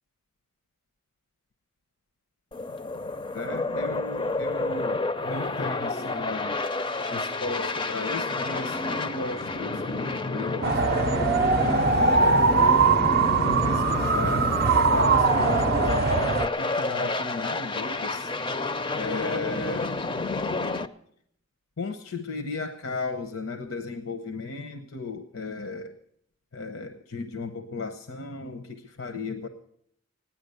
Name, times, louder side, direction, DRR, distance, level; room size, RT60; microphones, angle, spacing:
sound 1, 2.5-20.9, left 2 dB, 25° left, 0.5 m, -29 dB
voice 1, 3.3-6.6 7.1-10.9 11.6-13.1 13.4-14.5 14.9-18.3 18.9-19.9 21.8-26.0 26.5-29.5, left 3 dB, 75° left, 7 dB, 0.8 m, -35 dB
sound 2, 10.6-16.5, right 4 dB, 45° right, 0.5 m, -22 dB
15.5 x 10.5 x 6.7 m, 0.70 s
head